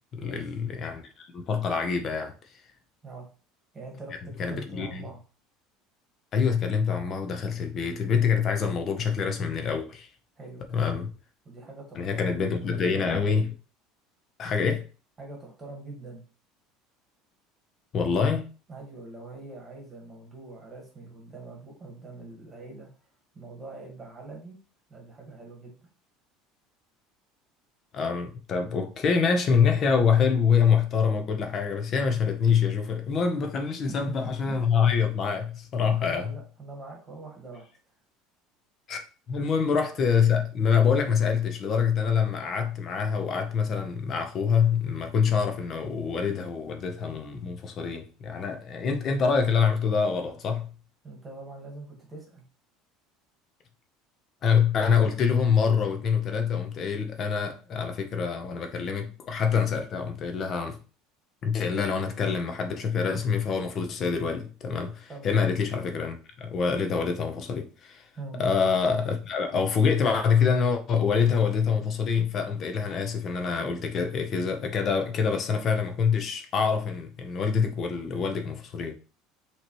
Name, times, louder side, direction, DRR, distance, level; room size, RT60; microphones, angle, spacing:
voice 1, 0.1-2.3 4.4-5.1 6.3-10.1 10.7-11.1 11.9-13.5 14.4-14.8 17.9-18.5 27.9-36.3 38.9-50.7 54.4-60.8 61.4-68.1 68.4-78.9, left 6 dB, 30° left, 0.6 m, -25 dB
voice 2, 3.7-5.2 10.4-11.0 11.4-13.1 15.2-16.2 18.7-22.9 23.3-24.6 24.9-25.8 33.9-34.0 34.2-34.5 35.8-37.7 39.4-39.6 51.0-52.4 65.1-65.4 68.2-68.4, right 3 dB, 15° right, 1.4 m, -43 dB
5.7 x 3.0 x 3.0 m
cardioid pair, 170°, 0 cm